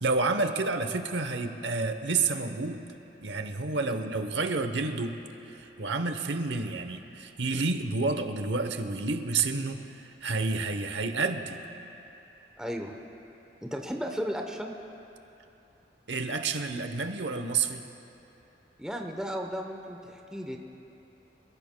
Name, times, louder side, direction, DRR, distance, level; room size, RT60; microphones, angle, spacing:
voice 1, 0.0-2.9 3.2-5.2 5.5-11.6 16.1-17.8, right 3 dB, 75° right, 7 dB, 0.9 m, -29 dB
voice 2, 12.6-12.9 13.6-14.8 18.8-20.6, equal, 5° right, 2 dB, 0.8 m, -34 dB
28.5 x 15.5 x 2.2 m, 2.9 s
head